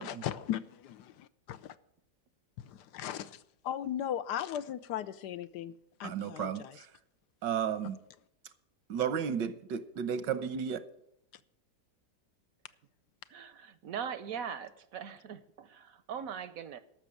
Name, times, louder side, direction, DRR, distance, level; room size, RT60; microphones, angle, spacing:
voice 1, 0.0-1.8 2.6-5.7 6.0-6.8, left 10 dB, 75° left, 1.2 m, -38 dB
voice 2, 6.0-6.9 7.4-8.0 8.9-10.8, right 8 dB, 85° right, 1.5 m, -33 dB
voice 3, 13.3-16.8, right 7 dB, 65° right, 0.9 m, -41 dB
13.0 x 6.2 x 8.4 m
omnidirectional pair, 1.9 m